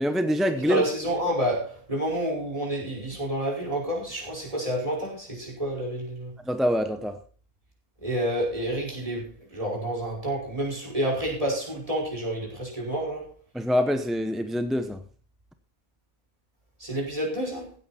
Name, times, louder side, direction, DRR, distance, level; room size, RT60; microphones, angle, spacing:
voice 1, 0.0-0.8 6.5-7.2 13.5-15.0, equal, ahead, 0.5 m, -25 dB
voice 2, 0.6-6.3 8.0-13.3 16.8-17.7, right 1 dB, 25° right, 5.3 m, -29 dB
15.5 x 9.1 x 4.3 m
omnidirectional pair, 1.5 m